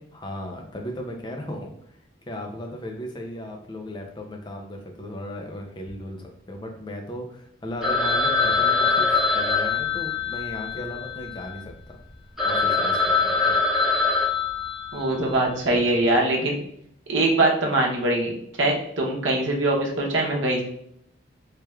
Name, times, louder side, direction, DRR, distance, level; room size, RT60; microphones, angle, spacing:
voice 1, 0.1-2.0 2.3-12.0 12.4-13.6, left 1 dB, 25° left, 2 dB, 0.4 m, -36 dB
Telephone, 7.8-11.6 12.1-12.2 12.4-15.2, left 4 dB, ahead, 1.3 m, -23 dB
voice 2, 14.9-16.6 17.1-20.6, right 2 dB, 75° right, -2 dB, 0.7 m, -22 dB
3.3 x 3.1 x 2.3 m, 0.70 s
head